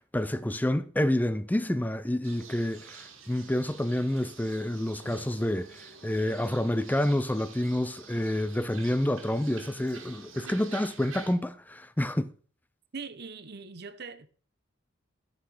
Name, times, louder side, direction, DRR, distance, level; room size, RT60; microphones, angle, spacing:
voice 1, 0.0-12.3, left 1 dB, 10° left, 0.5 m, -28 dB
sound 1, 2.2-11.3, right 5 dB, 75° right, 1.9 m, -48 dB
voice 2, 12.9-14.3, right 4 dB, 55° right, 0.8 m, -41 dB
13.0 x 5.8 x 4.9 m
head